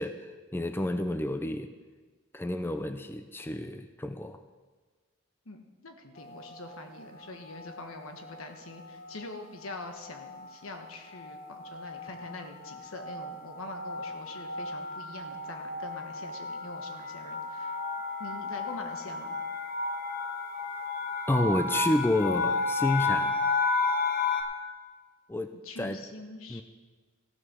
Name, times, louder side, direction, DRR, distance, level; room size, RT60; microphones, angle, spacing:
voice 1, 0.0-1.7 2.3-4.4 21.3-23.3 25.3-26.0 26.5-26.6, left 1 dB, 10° left, 8 dB, 0.4 m, -30 dB
voice 2, 5.4-17.8 18.2-19.4 25.6-26.6, left 2 dB, 85° left, 5 dB, 1.3 m, -44 dB
sound 1, 6.3-6.8 7.5-7.9 8.2-8.4 8.7-24.4, left 4 dB, 45° left, 0.9 m, -33 dB
15.0 x 6.5 x 6.1 m, 1.4 s
head